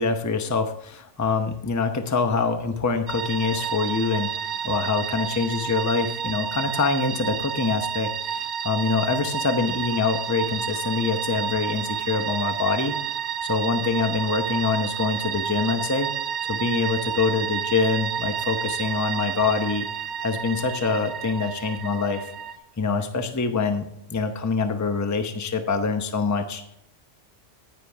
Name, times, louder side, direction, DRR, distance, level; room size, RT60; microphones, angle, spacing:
voice 1, 0.0-4.3 4.6-13.0 13.4-16.1 16.4-19.9 20.2-22.3 22.8-26.7, left 4 dB, 15° left, 7 dB, 0.7 m, -25 dB
sound 1, 3.1-22.6, right 8 dB, 65° right, 1.0 m, -30 dB
10.5 x 10.0 x 3.5 m, 0.73 s
omnidirectional pair, 1.3 m